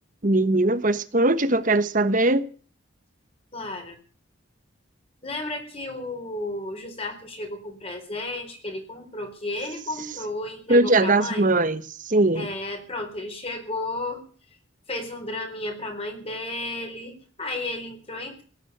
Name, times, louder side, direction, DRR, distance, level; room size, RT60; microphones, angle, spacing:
voice 1, 0.2-2.5 10.7-12.5, right 2 dB, 40° right, 1.2 m, -20 dB
voice 2, 3.5-4.0 5.2-11.4 12.4-14.3 14.9-18.4, left 2 dB, 30° left, 4.3 m, -33 dB
17.5 x 9.8 x 8.0 m
head